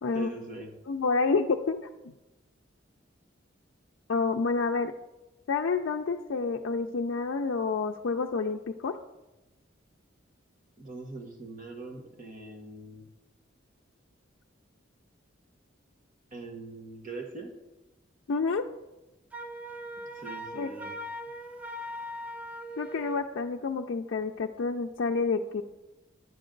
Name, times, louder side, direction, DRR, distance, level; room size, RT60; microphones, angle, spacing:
voice 1, 0.1-0.7 10.8-13.1 16.3-17.5 20.1-20.9, right 3 dB, 40° right, 2 dB, 1.3 m, -42 dB
voice 2, 0.9-2.1 4.1-4.9 5.5-8.9 18.3-18.6 20.6-20.7 22.8-25.6, left 4 dB, 75° left, 2 dB, 0.4 m, -29 dB
Wind instrument woodwind instrument, 19.3-23.3, equal, 5° right, 0.4 m, -40 dB
10.5 x 7.8 x 3.8 m, 1.0 s
head